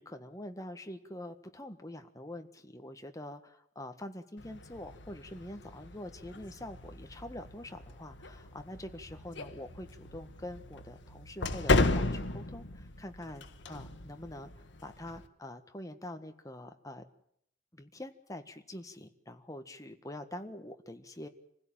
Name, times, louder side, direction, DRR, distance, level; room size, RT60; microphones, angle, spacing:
voice 1, 0.0-3.4 3.7-14.5 14.8-17.1 17.7-21.3, left 1 dB, 20° left, 7 dB, 1.5 m, -45 dB
sound 1, 4.4-15.3, left 2 dB, 70° left, 1.5 m, -35 dB
26.5 x 16.0 x 8.9 m, 0.71 s
head